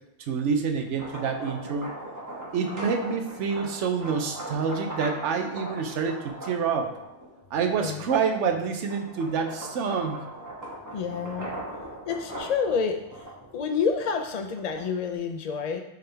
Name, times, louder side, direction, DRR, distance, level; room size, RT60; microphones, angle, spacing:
voice 1, 0.3-1.9 2.5-6.9 7.5-10.2, right 6 dB, 75° right, 5 dB, 1.0 m, -27 dB
sound 1, 0.8-7.4 7.9-15.1, right 1 dB, 15° right, 1.2 m, -39 dB
voice 2, 10.9-11.5 12.1-13.0 13.5-15.8, left 6 dB, 80° left, 5 dB, 0.3 m, -28 dB
7.6 x 3.7 x 3.4 m, 0.86 s
omnidirectional pair, 1.3 m